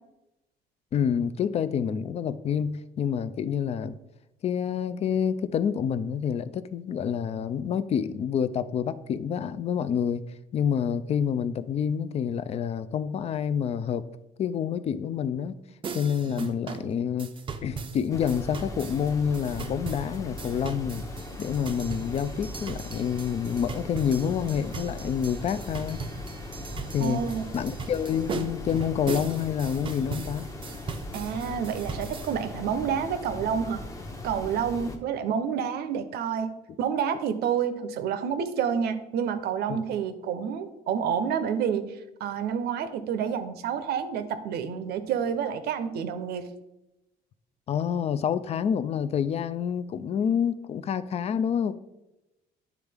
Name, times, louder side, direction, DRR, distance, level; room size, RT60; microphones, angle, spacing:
voice 1, 0.9-4.0 4.4-10.2 10.5-14.0 14.4-15.6 15.9-17.3 17.6-21.0 21.4-26.0 26.9-27.2 27.5-30.5 39.7-39.8 47.7-51.7, left 8 dB, 40° left, 14 dB, 0.3 m, -28 dB
sound 1, 15.8-32.4, right 5 dB, 30° right, 0.5 m, -39 dB
sound 2, 18.1-35.0, left 1 dB, 20° left, 0.8 m, -39 dB
voice 2, 27.0-27.5 31.1-33.8 34.2-41.8 42.2-46.5, right 7 dB, 70° right, 10 dB, 0.6 m, -29 dB
9.6 x 3.6 x 3.4 m, 0.95 s
cardioid pair, 110°, 17 cm